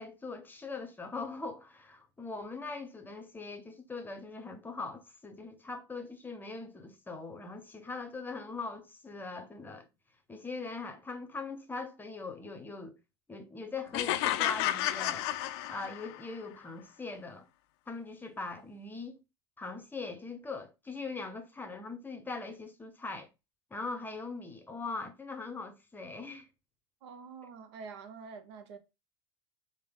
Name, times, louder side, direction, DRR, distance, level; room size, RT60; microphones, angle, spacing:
voice 1, 0.0-9.9 10.3-13.0 13.3-15.3 15.7-17.5 17.9-19.2 19.6-23.3 23.7-26.5, left 3 dB, 15° left, 0.6 m, -41 dB
sound 1, 13.9-16.3, left 13 dB, 65° left, 0.4 m, -31 dB
voice 2, 27.0-28.8, right 5 dB, 75° right, 0.7 m, -46 dB
3.3 x 2.1 x 3.5 m
hypercardioid pair, 105°, 14 cm